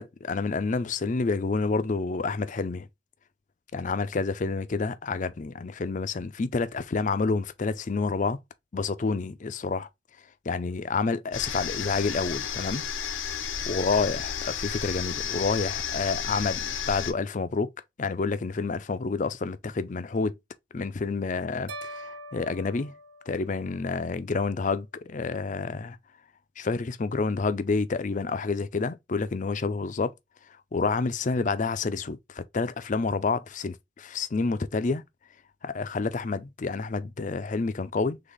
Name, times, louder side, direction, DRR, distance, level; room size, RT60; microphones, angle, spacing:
voice 1, 0.0-2.9 3.7-8.4 8.7-9.9 10.5-12.8 13.7-17.7 18.0-20.4 20.7-22.9 23.3-26.0 26.6-30.1 30.7-35.0 35.6-38.2, left 4 dB, 40° left, 0.4 m, -29 dB
sound 1, 11.3-17.1, left 7 dB, 75° left, 0.7 m, -32 dB
sound 2, 21.7-24.0, right 1 dB, 65° right, 0.7 m, -43 dB
4.0 x 3.4 x 3.3 m
head